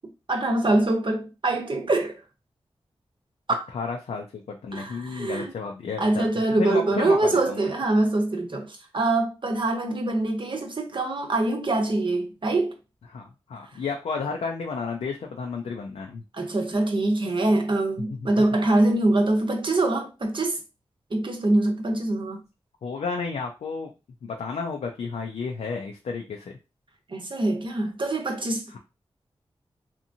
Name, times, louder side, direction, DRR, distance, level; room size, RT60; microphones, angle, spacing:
voice 1, 0.3-2.1 3.5-3.6 4.7-5.5 6.0-12.7 16.3-20.6 21.1-22.4 27.1-28.8, right 2 dB, 50° right, 0.8 m, -24 dB
voice 2, 3.7-6.3 6.6-7.7 13.1-16.2 22.8-23.9 24.2-26.6, left 4 dB, 85° left, 0.4 m, -32 dB
2.8 x 2.6 x 2.6 m
cardioid pair, 40°, 11 cm